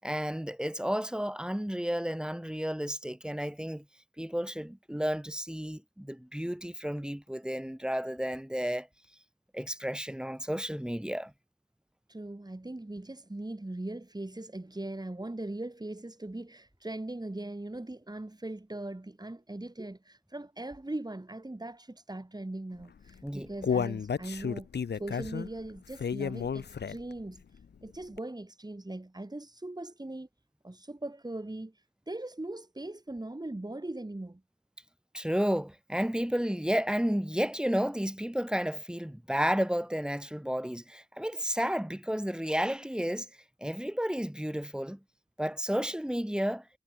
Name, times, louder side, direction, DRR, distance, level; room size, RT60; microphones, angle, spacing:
voice 1, 0.0-3.8 4.2-8.9 9.5-11.3 23.2-23.5 35.1-43.3 43.6-45.0 45.4-46.6, equal, 5° right, 7.1 m, -32 dB
voice 2, 12.1-24.7 24.9-27.4 27.8-30.3 30.6-34.4, right 2 dB, 25° right, 7.3 m, -40 dB
Human voice, 23.0-27.2 27.6-27.7 28.2-28.3, left 6 dB, 75° left, 0.9 m, -32 dB
wide cardioid pair, 70°, 17 cm